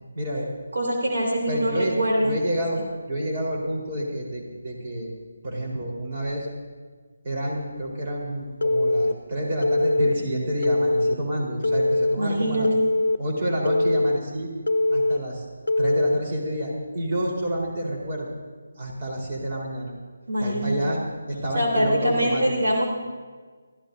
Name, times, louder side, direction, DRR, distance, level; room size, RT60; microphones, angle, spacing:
voice 1, 0.1-0.5 1.5-1.9 2.2-5.1 5.4-6.5 7.2-12.7 13.2-14.5 14.9-15.5 15.8-18.3 18.8-19.9 20.4-21.0 21.3-22.5, right 1 dB, 40° right, -2 dB, 4.3 m, -28 dB
voice 2, 0.7-2.4 12.2-12.7 20.3-20.8 21.5-22.9, equal, 65° right, -2 dB, 3.5 m, -24 dB
Telephone, 8.6-9.1 9.6-10.1 10.6-11.1 11.6-12.2 12.6-13.2 13.7-14.2 14.7-15.2 15.7-16.2, left 2 dB, 70° left, 0.7 m, -21 dB
24.5 x 15.5 x 2.8 m, 1.5 s
figure-of-eight pair, 155°, 0 cm